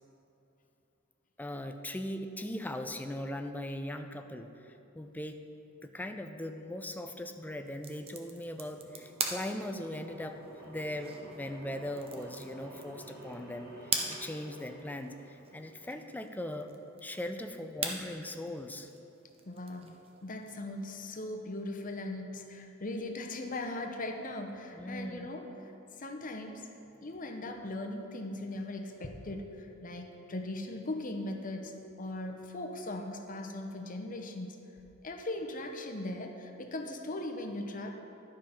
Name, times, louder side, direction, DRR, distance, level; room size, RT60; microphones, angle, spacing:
voice 1, 1.4-5.4 5.8-10.4 10.7-16.7 17.0-18.9 24.7-25.3, left 1 dB, 10° left, 6 dB, 0.4 m, -39 dB
sound 1, 7.6-21.1, right 4 dB, 30° right, 0.8 m, -43 dB
sound 2, 8.3-16.1, right 1 dB, 50° right, 1.7 m, -51 dB
voice 2, 19.5-19.9 20.2-25.4 26.0-26.6 27.0-34.6 35.0-37.9, left 2 dB, 40° left, 4 dB, 0.8 m, -39 dB
12.0 x 5.1 x 5.7 m, 2.9 s
head